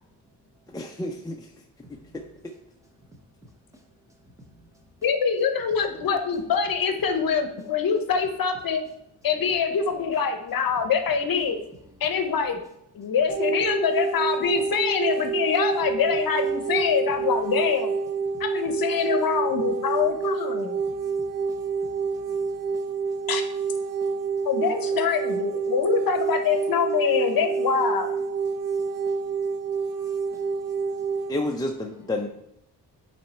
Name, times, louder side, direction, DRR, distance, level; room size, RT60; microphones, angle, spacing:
voice 1, 4.2-4.8 11.8-12.0 16.7-16.8 20.8-23.3 24.0-24.5 28.5-31.3 32.0-32.1, equal, 10° right, 0.9 m, -55 dB
voice 2, 5.0-8.8 9.2-11.6 12.0-12.6 12.9-17.9 18.4-20.8 23.3-23.4 24.5-28.1, left 6 dB, 55° left, 0.8 m, -24 dB
sound 1, 13.3-31.3, right 5 dB, 55° right, 0.8 m, -28 dB
voice 3, 31.3-32.3, left 2 dB, 10° left, 0.4 m, -28 dB
8.6 x 3.3 x 4.3 m
wide cardioid pair, 150°, 41 cm